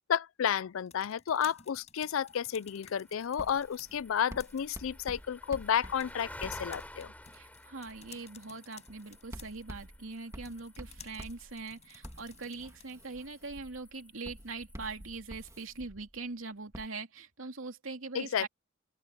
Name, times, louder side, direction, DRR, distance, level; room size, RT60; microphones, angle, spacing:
voice 1, 0.1-7.1 18.1-18.5, left 8 dB, 85° left, 0.4 m, -31 dB
sound 1, 0.6-13.2, left 8 dB, 35° left, 7.2 m, -57 dB
sound 2, 2.1-15.8, left 1 dB, 10° left, 4.3 m, -52 dB
Writing, 3.4-7.3 7.9-8.2 8.9-16.3 16.7-16.9, equal, 15° right, 1.9 m, -49 dB
voice 2, 7.3-18.5, right 3 dB, 85° right, 2.8 m, -42 dB
open air
head